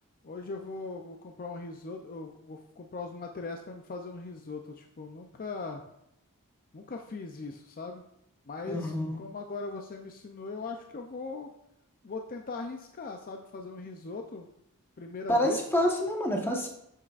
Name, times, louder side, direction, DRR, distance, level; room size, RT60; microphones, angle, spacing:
voice 1, 0.2-5.8 6.7-8.0 8.5-11.5 12.0-14.5 15.0-15.6, left 3 dB, 40° left, 3 dB, 0.5 m, -40 dB
voice 2, 8.7-9.2 15.3-16.7, equal, 10° left, 0 dB, 1.1 m, -27 dB
7.7 x 7.4 x 2.4 m, 0.77 s
head